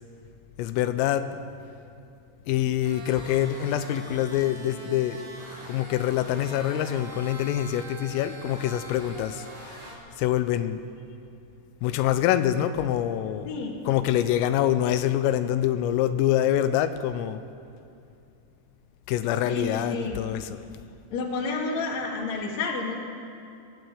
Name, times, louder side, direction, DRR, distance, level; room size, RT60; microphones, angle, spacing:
voice 1, 0.6-1.3 2.5-5.2 5.7-9.8 10.2-10.8 11.8-17.4 19.1-20.6, left 11 dB, 90° left, 10 dB, 3.3 m, -25 dB
sound 1, 2.8-9.9, equal, 65° right, 7.2 m, -43 dB
voice 2, 13.4-13.7 19.4-20.2 21.1-22.9, left 4 dB, 40° left, -1 dB, 3.0 m, -30 dB
22.0 x 14.5 x 8.0 m, 2.5 s
omnidirectional pair, 5.9 m